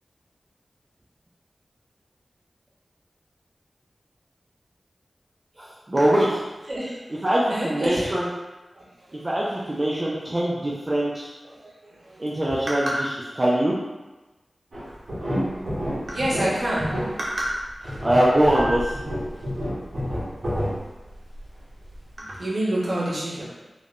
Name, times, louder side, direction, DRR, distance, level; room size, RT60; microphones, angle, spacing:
voice 1, 5.6-6.4 7.1-8.3 9.2-11.3 12.2-12.9 13.4-13.7 18.0-18.8, right 1 dB, 30° right, -6 dB, 0.4 m, -22 dB
voice 2, 6.7-7.2 7.5-8.1 8.8-8.9 9.1-9.3 11.5-11.7 12.0-12.2 16.1-16.9 17.2-17.5 22.2-23.4, right 1 dB, 65° right, -7 dB, 1.0 m, -27 dB
sound 1, 14.7-21.4 21.9-22.0, equal, 90° right, 1.4 m, -29 dB
3.5 x 2.1 x 2.5 m, 1.1 s
wide cardioid pair, 95°, 0 cm